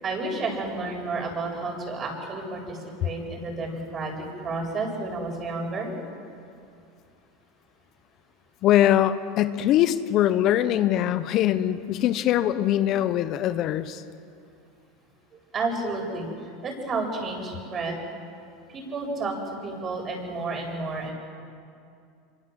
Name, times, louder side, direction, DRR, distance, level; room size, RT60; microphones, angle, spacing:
voice 1, 0.0-5.9 15.3-18.0 18.7-21.1, right 3 dB, 35° right, 2 dB, 7.8 m, -31 dB
voice 2, 8.6-14.0, left 12 dB, 50° left, 12 dB, 1.1 m, -22 dB
25.5 x 24.5 x 7.8 m, 2.5 s
hypercardioid pair, 95°, 0 cm